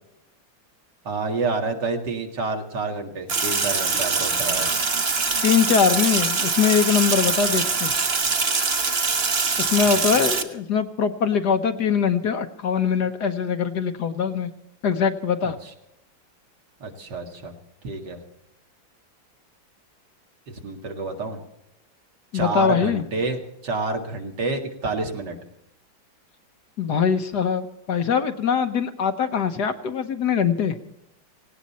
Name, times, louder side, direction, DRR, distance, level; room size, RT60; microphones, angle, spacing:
voice 1, 1.0-4.7 9.8-10.2 15.4-15.7 16.8-17.5 17.8-18.2 20.5-21.4 22.3-25.4, right 3 dB, 60° right, 3 dB, 2.6 m, -29 dB
Sink (filling or washing), 3.3-10.4, right 4 dB, 35° right, 1.3 m, -23 dB
voice 2, 5.4-7.9 9.6-14.5 14.8-15.6 22.3-23.0 26.8-30.7, left 7 dB, 60° left, 8 dB, 1.5 m, -22 dB
18.0 x 17.5 x 4.2 m, 0.84 s
omnidirectional pair, 2.1 m